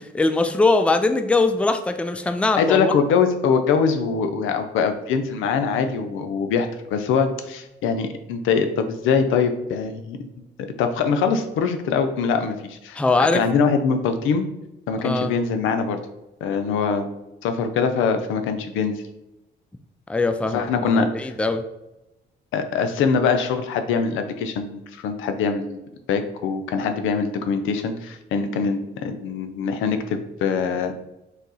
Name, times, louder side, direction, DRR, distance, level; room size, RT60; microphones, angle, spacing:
voice 1, 0.0-2.9 13.0-13.4 15.0-15.3 20.1-21.6, left 3 dB, 5° left, 8 dB, 0.3 m, -21 dB
voice 2, 2.6-10.3 10.8-14.4 14.9-16.0 16.4-17.1 17.4-18.9 20.5-21.3 22.5-25.8 26.1-31.0, left 5 dB, 90° left, 8 dB, 0.5 m, -23 dB
4.1 x 2.7 x 3.9 m, 0.93 s
cardioid pair, 90°, 20 cm